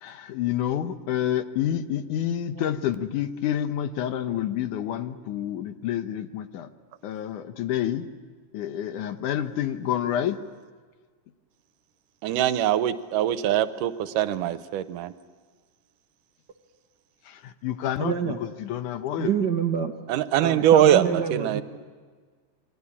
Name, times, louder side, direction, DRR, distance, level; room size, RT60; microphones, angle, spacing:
voice 1, 0.0-6.7 7.0-8.1 8.5-10.4 17.3-19.3, left 10 dB, 75° left, 10 dB, 2.5 m, -28 dB
voice 2, 12.2-15.1 20.1-21.6, right 11 dB, 80° right, 12 dB, 2.4 m, -22 dB
voice 3, 18.0-18.4 19.2-19.9 20.3-21.6, right 7 dB, 55° right, 5 dB, 1.2 m, -27 dB
29.0 x 23.0 x 8.6 m, 1.5 s
omnidirectional pair, 3.7 m